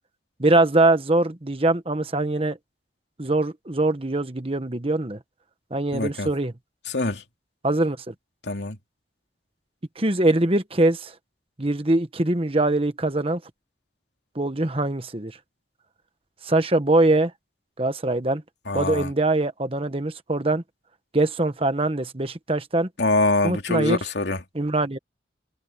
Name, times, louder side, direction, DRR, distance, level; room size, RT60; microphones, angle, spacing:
voice 1, 0.4-2.6 3.2-5.2 5.7-6.5 7.6-8.1 10.0-11.1 11.6-13.4 14.3-15.4 16.4-17.3 17.8-18.4 18.7-20.6 21.1-22.9 23.4-24.0 24.5-25.0, right 2 dB, 30° right, 1.3 m, -22 dB
voice 2, 5.9-6.3 6.9-7.2 8.4-8.8 18.7-19.1 23.0-24.4, left 2 dB, 75° left, 2.7 m, -24 dB
head